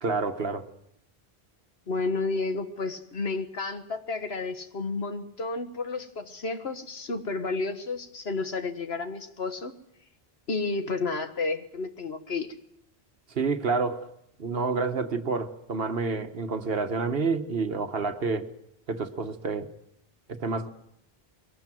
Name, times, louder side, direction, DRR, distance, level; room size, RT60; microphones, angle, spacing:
voice 1, 0.0-0.7 13.3-14.1 14.4-18.5 18.9-19.7 20.3-20.7, right 4 dB, 65° right, 1.5 m, -28 dB
voice 2, 1.9-9.7 10.5-12.5, left 3 dB, 75° left, 1.7 m, -31 dB
22.0 x 18.0 x 7.7 m
omnidirectional pair, 1.1 m